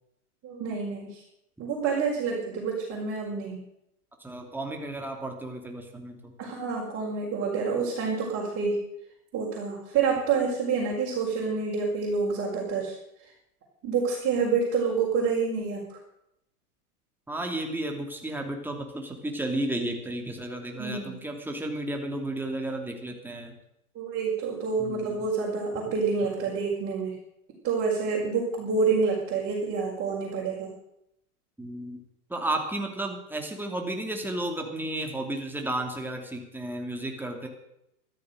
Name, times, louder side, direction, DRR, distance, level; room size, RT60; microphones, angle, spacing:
voice 1, 0.4-1.2 1.6-3.6 6.4-8.8 9.3-13.0 13.8-16.0 20.8-21.3 24.0-27.1 27.6-30.7, right 5 dB, 30° right, -4 dB, 5.0 m, -28 dB
voice 2, 4.2-6.3 17.3-23.6 24.8-25.2 31.6-32.0 32.3-37.5, right 1 dB, 5° right, 2 dB, 2.9 m, -33 dB
13.5 x 13.5 x 6.6 m, 0.82 s
hypercardioid pair, 120°, 45 cm